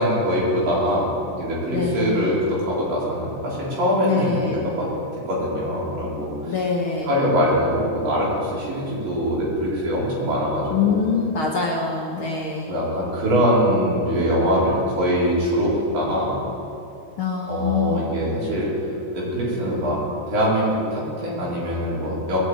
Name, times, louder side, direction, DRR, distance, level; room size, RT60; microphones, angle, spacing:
voice 1, 0.0-4.9 5.3-6.6 7.0-11.1 12.7-16.4 17.5-18.7 19.1-22.4, equal, 80° right, -6 dB, 5.5 m, -23 dB
voice 2, 1.7-2.4 4.0-4.6 6.5-7.1 10.7-12.7 17.2-18.1, left 5 dB, 55° left, -2 dB, 1.5 m, -24 dB
20.0 x 6.8 x 8.7 m, 2.8 s
omnidirectional pair, 3.9 m